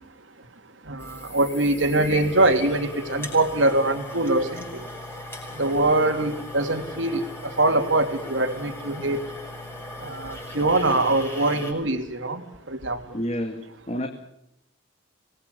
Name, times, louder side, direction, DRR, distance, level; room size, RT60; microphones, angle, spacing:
voice 1, 0.9-4.8 5.6-7.2 7.6-9.2 10.0-12.4 12.7-13.0, right 2 dB, 80° right, 6 dB, 3.1 m, -23 dB
sound 1, 1.0-11.7, left 1 dB, 10° left, 6.8 m, -38 dB
voice 2, 13.1-14.1, equal, 35° left, 5 dB, 2.1 m, -29 dB
25.0 x 20.5 x 6.9 m, 0.78 s
head